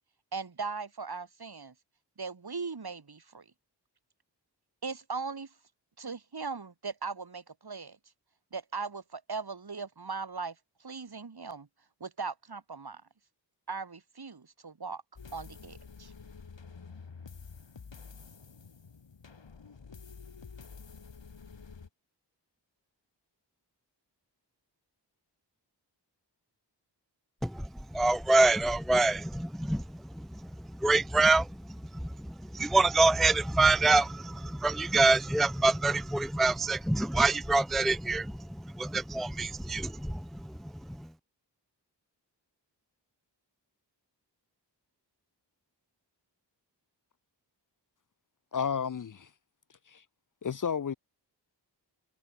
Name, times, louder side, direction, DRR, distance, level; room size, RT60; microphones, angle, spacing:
voice 1, 0.3-1.7 2.2-3.4 4.8-5.5 6.0-8.0 8.5-10.5 10.8-11.7 12.0-13.0 13.7-15.0 15.3-16.1, right 4 dB, 60° right, 3.1 m, -39 dB
sound 1, 15.2-21.9, left 5 dB, 85° left, 7.2 m, -49 dB
voice 2, 27.9-29.8 30.8-31.5 32.5-38.3 38.8-40.2, right 3 dB, ahead, 0.5 m, -25 dB
voice 3, 48.5-49.3 49.9-50.0 50.4-50.9, left 7 dB, 45° left, 0.6 m, -32 dB
cardioid pair, 50°, 43 cm